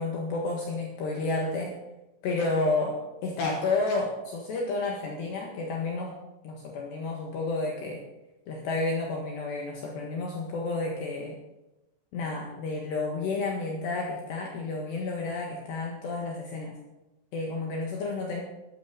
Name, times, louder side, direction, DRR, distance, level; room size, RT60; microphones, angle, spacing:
voice 1, 0.0-1.7 2.2-3.0 3.2-6.1 6.4-8.0 8.5-11.3 12.1-16.8 17.3-18.4, left 3 dB, 65° left, -1 dB, 3.4 m, -31 dB
14.5 x 13.0 x 3.9 m, 0.97 s
omnidirectional pair, 5.9 m